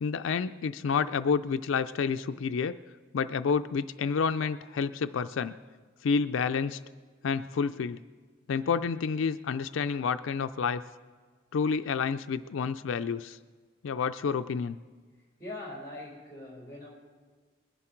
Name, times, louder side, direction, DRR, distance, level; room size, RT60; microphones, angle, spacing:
voice 1, 0.0-2.8 3.1-5.6 6.0-6.8 7.2-8.0 8.5-10.8 11.5-13.4 13.8-14.8, left 5 dB, 85° left, 10 dB, 0.4 m, -29 dB
voice 2, 15.4-16.9, left 1 dB, 15° left, -3 dB, 4.6 m, -42 dB
21.0 x 11.0 x 4.5 m, 1.5 s
head